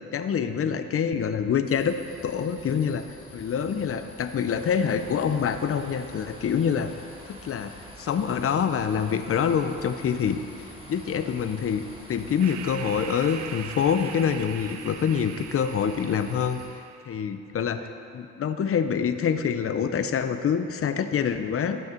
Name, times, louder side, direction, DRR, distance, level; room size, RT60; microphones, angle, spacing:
voice 1, 0.1-2.0 2.2-3.0 3.3-6.9 7.3-7.7 8.0-10.4 10.9-16.6 17.1-21.8, left 7 dB, 50° left, 9 dB, 0.7 m, -26 dB
sound 1, 1.6-16.7, left 3 dB, 90° left, 2.4 m, -49 dB
sound 2, 4.5-14.3, right 1 dB, 20° right, 1.4 m, -48 dB
sound 3, 12.4-17.2, right 8 dB, 60° right, 0.6 m, -41 dB
15.0 x 6.4 x 4.5 m, 2.4 s
cardioid pair, 90°, 30 cm